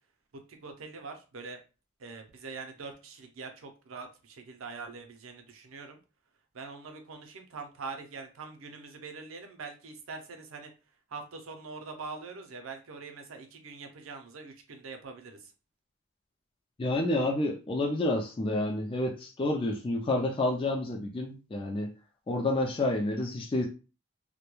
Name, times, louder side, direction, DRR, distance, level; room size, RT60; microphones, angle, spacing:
voice 1, 0.5-1.6 2.0-6.0 6.5-10.7 11.1-15.5, right 4 dB, 90° right, 0.5 m, -43 dB
voice 2, 16.8-21.9 22.3-23.7, left 2 dB, 25° left, 0.3 m, -29 dB
2.2 x 2.1 x 3.0 m
head